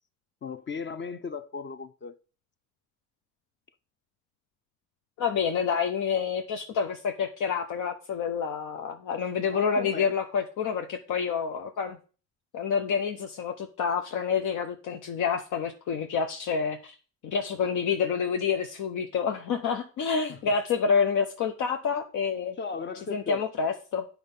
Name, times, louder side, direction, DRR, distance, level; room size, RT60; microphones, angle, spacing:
voice 1, 0.4-2.2 9.5-10.2 20.3-20.5 22.6-23.4, left 5 dB, 40° left, 0.7 m, -36 dB
voice 2, 5.2-12.0 12.5-16.9 17.2-22.6 23.1-24.1, left 6 dB, 80° left, 0.9 m, -28 dB
8.6 x 4.7 x 5.4 m
cardioid pair, 90°, 30 cm